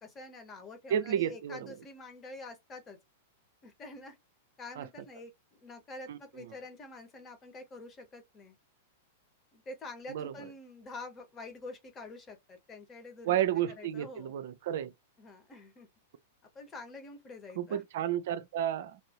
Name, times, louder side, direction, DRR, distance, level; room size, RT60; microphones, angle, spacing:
voice 1, 0.0-3.0 3.6-4.2 4.6-8.5 9.5-13.4 13.8-14.3 15.2-15.9 16.5-17.8, left 2 dB, 20° left, 1.3 m, -47 dB
voice 2, 0.9-1.7 4.8-4.9 6.1-6.5 10.1-10.3 13.2-14.9 17.6-19.0, right 10 dB, 55° right, 0.5 m, -32 dB
3.3 x 2.6 x 3.0 m
figure-of-eight pair, 95°, 0 cm